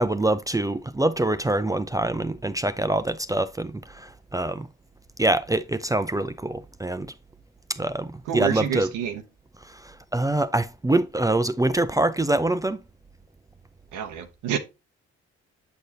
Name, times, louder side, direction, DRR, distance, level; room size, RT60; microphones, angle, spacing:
voice 1, 0.0-4.7 5.2-7.1 7.7-8.9 9.7-12.8, right 2 dB, 10° right, 0.5 m, -25 dB
voice 2, 8.3-9.2 13.9-14.6, right 9 dB, 85° right, 0.8 m, -28 dB
7.9 x 5.0 x 2.7 m
supercardioid pair, 55°, 30 cm